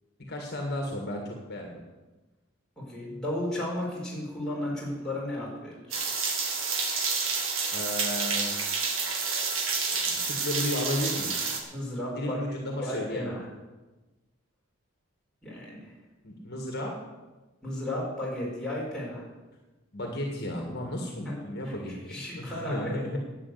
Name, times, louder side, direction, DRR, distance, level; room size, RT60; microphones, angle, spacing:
voice 1, 0.3-1.8 7.7-8.5 10.0-11.3 12.1-13.3 16.2-16.9 19.9-23.2, left 1 dB, 50° left, 1 dB, 1.9 m, -33 dB
voice 2, 2.8-6.1 11.7-12.4 12.8-13.5 15.4-15.9 17.6-19.2 21.2-21.4 21.6-22.9, left 1 dB, 5° left, -6 dB, 4.7 m, -34 dB
sound 1, 5.9-11.6, right 4 dB, 70° right, 2.0 m, -29 dB
11.0 x 8.9 x 8.1 m, 1.2 s
head